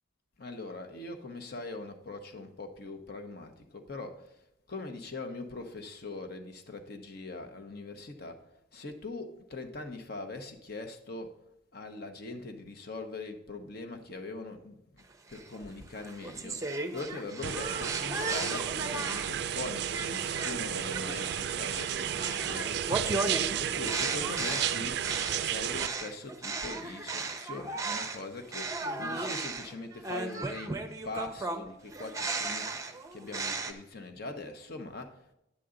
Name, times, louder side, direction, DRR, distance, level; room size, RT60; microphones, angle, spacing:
voice 1, 0.4-4.4 4.7-8.4 8.7-11.4 11.7-25.0 25.4-30.8 31.0-35.3, left 2 dB, 50° left, 6 dB, 1.0 m, -42 dB
sound 1, 15.3-19.4 19.9-28.2 28.5-33.7, right 3 dB, 15° right, 0.6 m, -36 dB
sound 2, 17.4-25.9, right 9 dB, 55° right, 0.3 m, -33 dB
10.0 x 8.3 x 3.8 m, 0.84 s
head